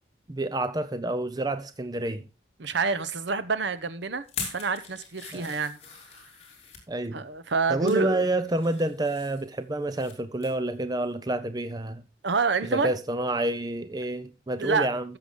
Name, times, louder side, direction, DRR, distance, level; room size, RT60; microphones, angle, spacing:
voice 1, 0.3-2.3 5.3-5.5 6.9-7.3 7.7-12.0 12.6-15.1, right 1 dB, 20° right, 0.6 m, -28 dB
voice 2, 2.6-4.2 4.5-5.8 7.1-8.3 12.2-12.9 14.6-14.9, right 4 dB, 75° right, 0.8 m, -27 dB
sound 1, 4.2-6.9 7.5-8.0 8.4-10.1 10.4-10.6 11.0-11.1, left 5 dB, 35° left, 3.1 m, -41 dB
13.5 x 6.8 x 3.7 m
head